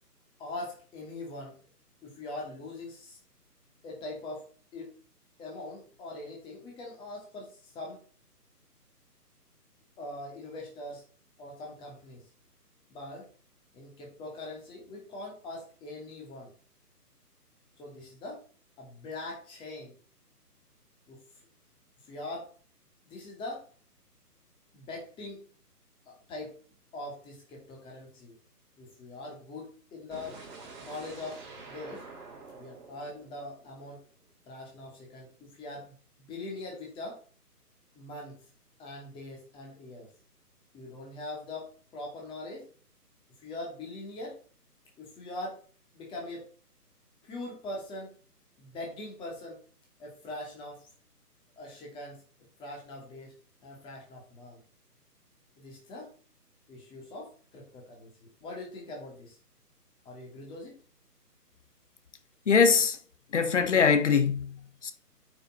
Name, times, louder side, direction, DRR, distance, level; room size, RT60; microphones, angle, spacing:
voice 1, 0.4-1.6 2.0-3.2 3.8-4.5 4.7-4.9 5.4-8.0 10.0-11.0 11.4-12.2 12.9-13.3 13.7-16.5 17.8-18.4 18.8-19.9 21.1-21.2 22.1-22.5 23.1-23.7 24.7-25.5 26.1-26.6 26.9-28.3 28.8-30.4 30.8-32.1 32.6-34.0 34.5-37.2 37.9-38.4 38.8-40.1 40.7-42.7 43.4-44.4 45.0-45.6 45.9-46.5 47.2-48.1 48.6-49.6 50.0-50.9 51.6-52.2 52.6-53.3 53.6-54.6 55.6-56.1 56.7-59.4 60.0-60.8, left 2 dB, 10° left, 2.6 m, -42 dB
sound 1, 30.1-34.1, right 4 dB, 15° right, 2.7 m, -48 dB
voice 2, 62.5-63.0 63.3-64.9, left 6 dB, 45° left, 1.4 m, -23 dB
8.8 x 6.3 x 4.4 m
figure-of-eight pair, 145°, 48 cm